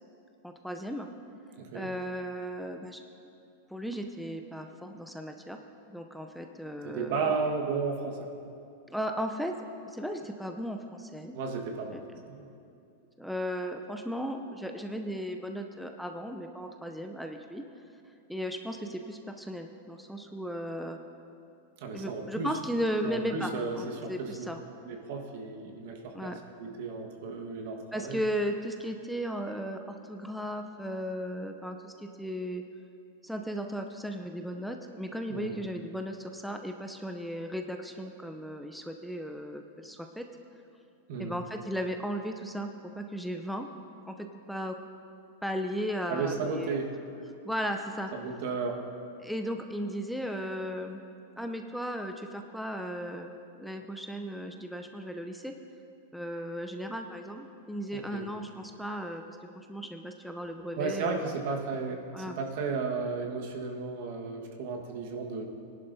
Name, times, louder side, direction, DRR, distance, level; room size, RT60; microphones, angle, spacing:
voice 1, 0.4-1.1 1.7-3.0 3.7-5.6 5.9-7.3 8.9-9.5 9.9-11.4 11.9-12.0 13.2-17.6 18.3-21.0 21.9-24.6 26.1-26.4 27.9-32.6 33.2-40.2 41.2-42.7 42.9-43.7 44.1-44.8 45.4-46.8 47.4-48.1 49.2-51.0 51.4-53.3 53.6-55.5 56.1-61.3 62.1-62.4, equal, ahead, 4 dB, 0.5 m, -36 dB
voice 2, 1.6-1.9 6.8-8.3 11.3-12.5 21.8-22.5 23.0-24.5 24.8-26.3 26.6-28.2 35.3-35.6 41.1-41.3 46.1-46.9 48.1-48.8 57.9-58.3 60.8-65.4, right 4 dB, 65° right, 2 dB, 1.4 m, -34 dB
18.5 x 11.0 x 2.7 m, 2.6 s
hypercardioid pair, 125°, 0 cm